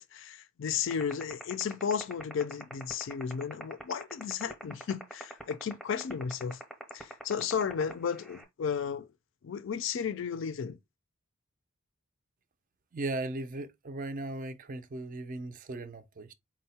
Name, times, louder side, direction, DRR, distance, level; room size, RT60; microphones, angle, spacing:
voice 1, 0.0-6.6 6.9-9.1 9.4-10.8, left 7 dB, 60° left, 0.4 m, -34 dB
sound 1, 0.9-8.4, equal, ahead, 0.7 m, -40 dB
voice 2, 12.9-16.3, right 2 dB, 40° right, 0.4 m, -37 dB
4.4 x 2.1 x 4.1 m
head